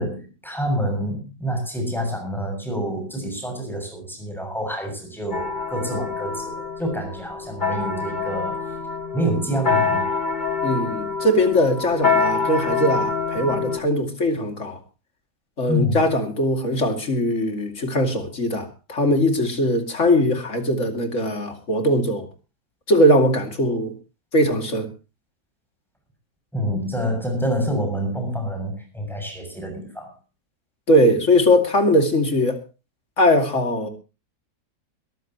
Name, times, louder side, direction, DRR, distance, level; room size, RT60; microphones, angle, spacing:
voice 1, 0.0-8.6 9.1-10.1 15.7-16.1 26.5-30.1, equal, ahead, 7.2 m, -27 dB
sound 1, 5.3-13.8, left 4 dB, 30° left, 1.7 m, -25 dB
voice 2, 10.6-14.8 15.6-22.3 22.9-23.9 24.3-24.9 30.9-32.6 33.2-33.9, equal, 45° left, 2.9 m, -20 dB
22.0 x 14.0 x 3.0 m
omnidirectional pair, 1.8 m